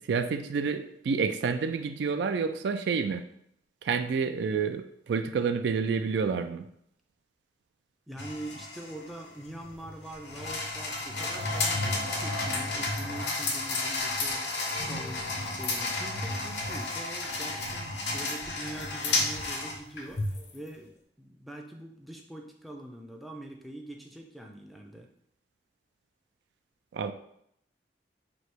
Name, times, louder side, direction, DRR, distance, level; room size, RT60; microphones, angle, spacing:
voice 1, 0.1-3.2 3.8-6.6 26.9-27.1, right 5 dB, 70° right, 9 dB, 0.3 m, -29 dB
voice 2, 8.1-14.5 14.8-20.9 21.2-25.1, right 1 dB, ahead, 2 dB, 0.4 m, -43 dB
sound 1, 8.2-20.6, left 2 dB, 70° left, 0.8 m, -32 dB
3.2 x 2.8 x 4.5 m, 0.72 s
head